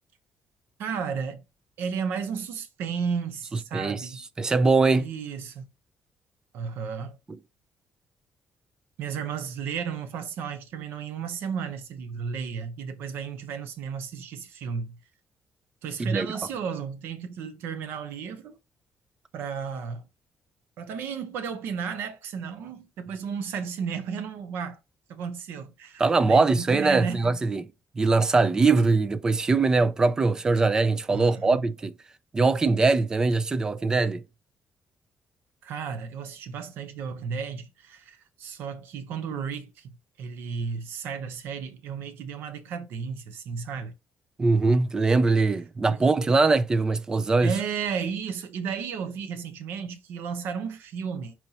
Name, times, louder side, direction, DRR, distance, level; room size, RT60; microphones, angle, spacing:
voice 1, 0.8-1.4 1.8-4.3 4.9-5.7 6.5-7.2 9.0-15.0 15.8-18.6 19.3-20.1 20.8-24.8 25.1-27.3 31.1-31.6 35.6-39.9 40.2-43.9 45.9-46.0 47.4-51.3, right 6 dB, 90° right, 0.8 m, -33 dB
voice 2, 4.4-5.1 16.0-16.3 26.0-27.7 28.0-31.9 32.3-34.2 44.4-47.5, right 3 dB, 20° right, 0.3 m, -22 dB
4.2 x 4.1 x 2.8 m
cardioid pair, 170°, 4 cm